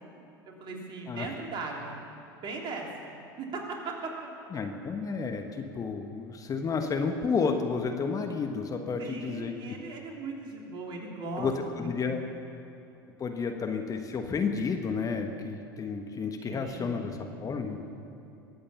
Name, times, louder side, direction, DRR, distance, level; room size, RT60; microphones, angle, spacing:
voice 1, 0.5-2.0 2.4-4.1 9.0-12.2 16.4-17.2, right 3 dB, 40° right, 0 dB, 3.3 m, -38 dB
voice 2, 4.5-9.5 11.4-11.5 11.8-12.2 13.2-17.8, left 5 dB, 30° left, 4 dB, 1.4 m, -31 dB
22.5 x 8.6 x 7.1 m, 2.8 s
hypercardioid pair, 80°, 12 cm